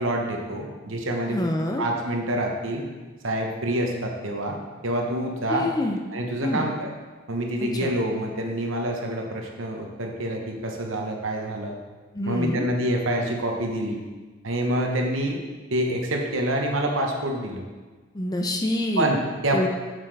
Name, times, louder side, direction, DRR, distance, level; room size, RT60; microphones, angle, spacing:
voice 1, 0.0-1.4 1.8-2.8 3.2-4.6 4.8-5.7 6.1-6.9 7.3-11.8 12.3-14.0 14.4-15.4 15.7-17.6 19.0-19.7, right 1 dB, 70° right, 2 dB, 1.0 m, -26 dB
voice 2, 1.3-1.8 5.5-6.0 6.4-6.6 7.8-7.9 12.1-12.7 18.1-19.1 19.5-19.7, left 1 dB, 20° left, 3 dB, 0.5 m, -26 dB
7.5 x 6.6 x 3.4 m, 1.3 s
head